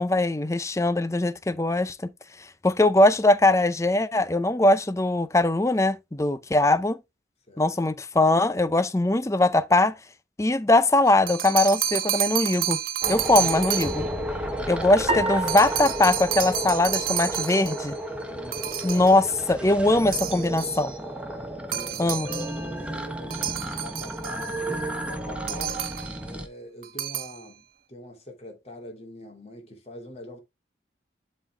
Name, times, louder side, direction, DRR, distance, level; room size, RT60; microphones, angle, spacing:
voice 1, 0.0-2.1 2.6-7.0 7.6-9.9 10.4-12.8 13.1-14.0 14.7-18.0 18.8-20.9 22.0-22.3, left 2 dB, 15° left, 0.5 m, -21 dB
voice 2, 7.5-8.0 14.4-14.9 18.3-19.0 21.3-22.2 22.6-24.6 25.0-25.9 26.2-30.4, equal, 35° left, 2.6 m, -44 dB
sound 1, 11.1-14.2 15.5-17.9 18.5-19.2 20.1-20.8 21.7-22.6 23.3-24.5 25.5-26.2 26.8-27.4, right 12 dB, 50° right, 0.6 m, -30 dB
sound 2, 13.0-26.5, right 1 dB, 5° right, 1.1 m, -33 dB
sound 3, 15.1-17.6, right 3 dB, 30° right, 1.7 m, -32 dB
12.0 x 4.3 x 3.3 m
head